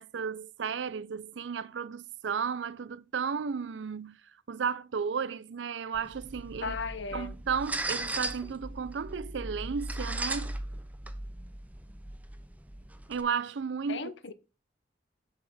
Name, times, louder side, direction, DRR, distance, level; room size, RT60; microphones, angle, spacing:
voice 1, 0.0-4.2 4.5-6.8 7.1-10.6 13.1-14.3, right 6 dB, 75° right, 0.5 m, -34 dB
sound 1, 5.9-13.2, right 2 dB, 10° right, 0.5 m, -38 dB
voice 2, 6.6-7.4 13.9-14.3, left 5 dB, 80° left, 0.7 m, -36 dB
7.9 x 5.6 x 3.5 m
head